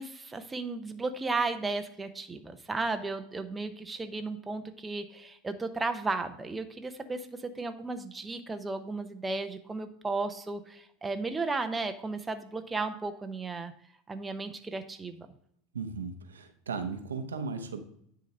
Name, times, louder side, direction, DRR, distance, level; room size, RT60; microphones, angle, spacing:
voice 1, 0.0-13.7 14.1-15.3, right 3 dB, 15° right, 7 dB, 0.8 m, -34 dB
voice 2, 15.7-17.8, right 5 dB, 85° right, 7 dB, 0.9 m, -36 dB
9.6 x 3.9 x 5.4 m, 0.69 s
hypercardioid pair, 85°, 0 cm